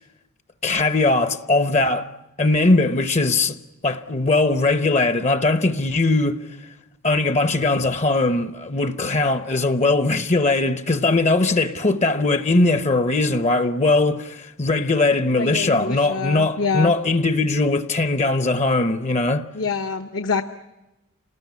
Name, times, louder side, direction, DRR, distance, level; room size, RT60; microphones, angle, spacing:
voice 1, 0.6-2.1 2.4-3.6 3.8-6.4 7.0-19.5, left 2 dB, 30° left, 0.9 m, -20 dB
voice 2, 15.4-16.9 19.5-20.4, left 5 dB, 60° left, 1.0 m, -25 dB
28.0 x 19.5 x 9.5 m
head